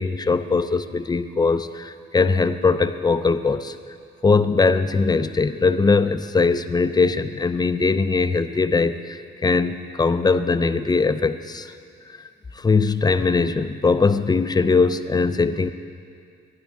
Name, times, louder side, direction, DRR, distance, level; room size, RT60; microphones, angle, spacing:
voice 1, 0.0-3.8 4.2-11.7 12.5-15.7, left 4 dB, 20° left, 10 dB, 0.6 m, -20 dB
22.5 x 9.9 x 3.7 m, 2.3 s
cardioid pair, 90°, 20 cm